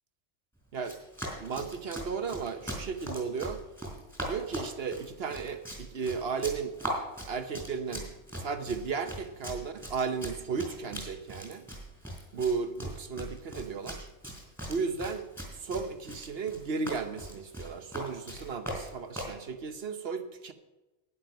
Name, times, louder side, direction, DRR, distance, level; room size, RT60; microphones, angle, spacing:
Run, 0.8-19.4, right 1 dB, ahead, 4.0 m, -40 dB
voice 1, 1.4-3.6 4.2-6.8 7.3-11.6 12.3-14.1 14.6-15.3 15.6-20.5, right 5 dB, 55° right, 9 dB, 1.0 m, -34 dB
12.0 x 10.0 x 5.3 m, 1.1 s
omnidirectional pair, 1.3 m